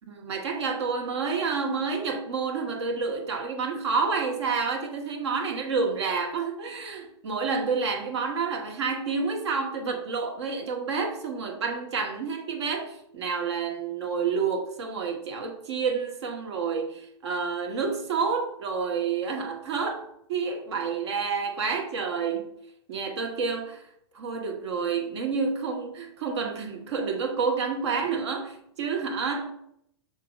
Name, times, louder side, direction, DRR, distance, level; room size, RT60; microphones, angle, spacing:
voice 1, 0.1-22.5 22.9-23.8 24.1-29.5, right 5 dB, 80° right, 1.4 m, -29 dB
6.6 x 2.8 x 5.0 m
hypercardioid pair, 120°, 14 cm